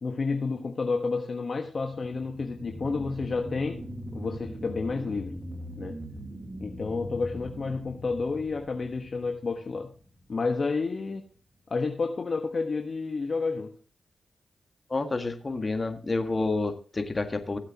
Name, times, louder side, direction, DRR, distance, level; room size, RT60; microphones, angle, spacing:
voice 1, 0.0-3.8 4.1-5.3 5.8-6.0 6.6-9.9 10.3-11.2 11.7-13.7, left 4 dB, 55° left, 3 dB, 1.3 m, -30 dB
sound 1, 1.6-10.7 11.1-11.2, equal, 35° right, 1.9 m, -41 dB
voice 2, 14.9-17.6, left 3 dB, 40° left, 7 dB, 1.9 m, -29 dB
16.5 x 8.0 x 3.0 m, 0.39 s
cardioid pair, 50°, 0 cm